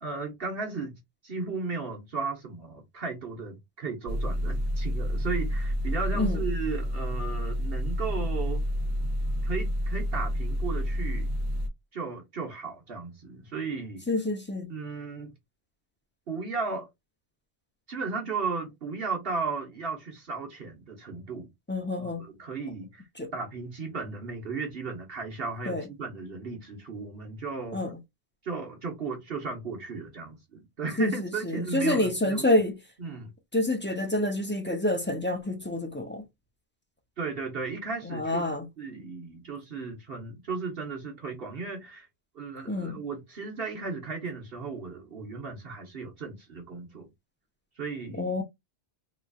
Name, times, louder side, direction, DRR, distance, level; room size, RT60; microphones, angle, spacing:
voice 1, 0.0-8.6 9.4-11.3 11.9-14.1 14.7-15.3 16.3-16.9 17.9-21.5 22.0-23.1 23.3-27.8 28.4-32.4 33.0-33.3 37.2-42.1 42.3-47.1 47.8-48.3, right 4 dB, 55° right, 1.3 m, -35 dB
sound 1, 4.1-11.7, equal, 75° right, 1.2 m, -29 dB
voice 2, 14.1-14.7 21.7-22.2 23.2-23.3 25.7-25.8 27.7-28.0 31.0-32.8 33.5-36.2 38.1-38.7 42.7-43.0 48.2-48.4, left 1 dB, 15° left, 0.6 m, -27 dB
3.9 x 3.1 x 2.4 m
omnidirectional pair, 1.2 m